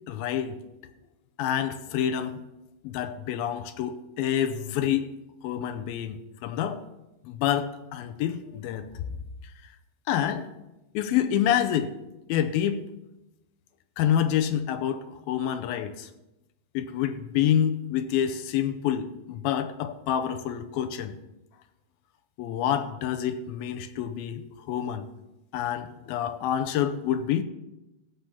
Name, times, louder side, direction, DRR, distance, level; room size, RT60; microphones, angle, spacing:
voice 1, 0.1-0.6 1.4-2.4 2.8-5.1 5.4-6.8 7.2-8.9 10.1-10.5 10.9-11.9 12.3-12.8 14.0-16.1 16.7-21.2 22.4-25.1 25.5-27.4, left 10 dB, 75° left, 2.3 m, -27 dB
15.0 x 7.7 x 5.8 m
omnidirectional pair, 4.8 m